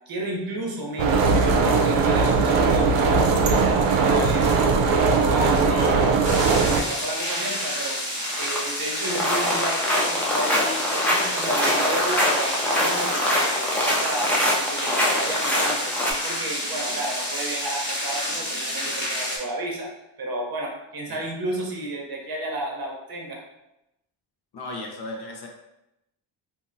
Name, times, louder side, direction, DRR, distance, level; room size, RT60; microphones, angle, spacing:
voice 1, 0.0-8.0 8.3-15.9 16.2-19.9 20.2-23.4, right 1 dB, 45° right, 0 dB, 0.8 m, -32 dB
sound 1, 1.0-6.8, right 4 dB, 80° right, 0.6 m, -19 dB
voice 2, 5.7-6.1 21.1-21.2 24.5-25.5, left 2 dB, 50° left, 1 dB, 0.8 m, -34 dB
sound 2, 6.2-19.4, equal, 20° left, 1.2 m, -29 dB
sound 3, 6.7-6.8 7.2-7.5 7.8-8.7 9.0-16.1, left 1 dB, 5° left, 0.6 m, -24 dB
2.8 x 2.6 x 2.6 m, 0.87 s
cardioid pair, 85°, 50 cm